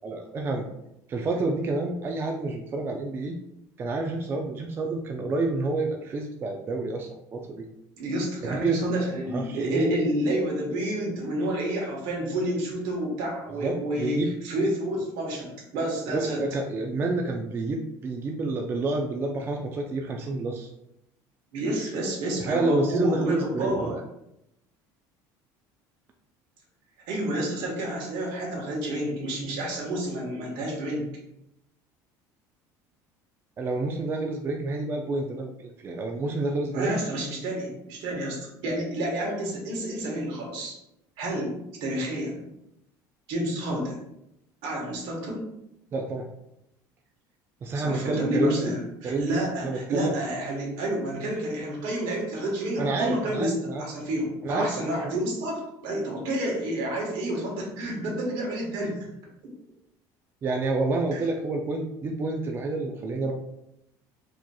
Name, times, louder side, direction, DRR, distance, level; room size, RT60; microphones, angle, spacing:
voice 1, 0.0-0.7 1.1-3.3 3.8-7.7 8.5-8.8 9.3-9.8 13.6-14.3 16.1-20.7 22.4-24.0 33.6-37.0 45.9-46.3 47.6-48.7 49.0-50.2 52.8-53.8 54.4-55.1 60.4-63.3, right 2 dB, 25° right, 1 dB, 0.3 m, -29 dB
voice 2, 8.0-16.4 21.5-24.0 27.1-31.1 36.7-40.8 41.2-41.5 41.8-42.4 43.3-44.0 44.6-45.4 47.7-53.5 53.8-58.9 61.1-61.2, right 1 dB, 70° right, -1 dB, 1.3 m, -29 dB
4.7 x 2.8 x 2.3 m, 0.82 s
cardioid pair, 140°, 9 cm